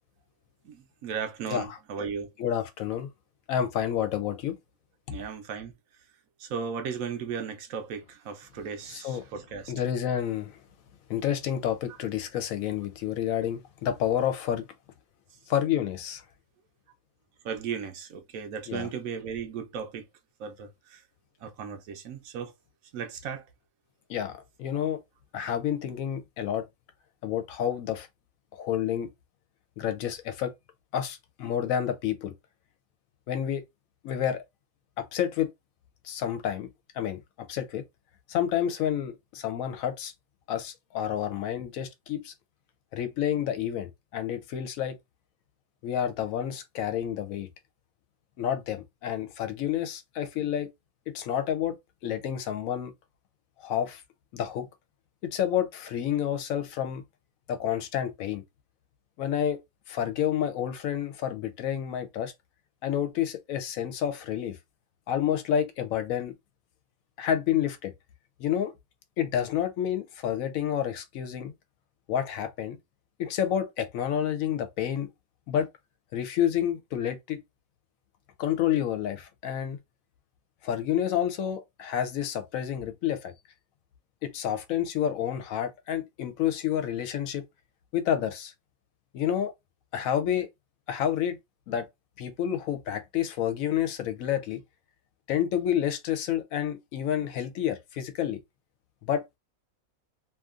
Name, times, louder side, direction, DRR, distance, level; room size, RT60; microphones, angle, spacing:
voice 1, 0.6-2.3 5.1-5.7 6.4-9.7 17.4-20.0 20.4-21.0 21.4-22.5 22.9-23.4, right 6 dB, 75° right, 1.0 m, -36 dB
voice 2, 2.4-3.1 3.5-4.6 8.9-9.2 9.7-10.5 11.1-14.6 15.5-16.2 18.7-18.9 24.1-24.3 24.6-25.0 25.3-26.6 27.2-28.1 28.6-29.1 29.8-30.5 30.9-32.3 33.3-33.6 34.0-34.4 35.0-35.5 36.0-36.7 36.9-37.8 38.3-40.1 40.5-42.3 42.9-44.9 45.8-47.5 48.4-50.7 51.1-51.8 52.0-52.9 53.6-54.0 54.3-54.7 55.2-57.0 57.5-58.4 59.2-59.6 59.9-62.3 62.8-64.6 65.1-66.3 67.2-67.9 68.4-68.7 69.2-71.5 72.1-72.8 73.2-75.1 75.5-75.7 76.1-77.4 78.4-79.8 80.6-83.3 84.2-87.4 87.9-88.5 89.1-89.5 89.9-90.5 90.9-91.4 91.7-91.9 92.2-94.6 95.3-98.4 99.0-99.4, left 10 dB, 75° left, 1.0 m, -29 dB
2.8 x 2.5 x 2.4 m
omnidirectional pair, 1.5 m